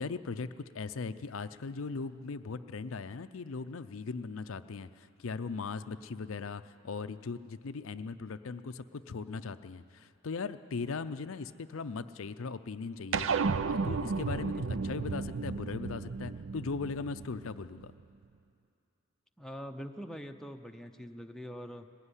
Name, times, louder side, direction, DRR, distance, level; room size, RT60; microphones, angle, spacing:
voice 1, 0.0-13.3 13.7-17.9, left 4 dB, 65° left, 11 dB, 0.5 m, -39 dB
sound 1, 13.1-17.9, right 4 dB, 60° right, 0.5 m, -33 dB
voice 2, 14.5-15.0 19.4-21.9, equal, ahead, 4 dB, 0.7 m, -44 dB
20.0 x 15.5 x 9.8 m, 2.5 s
head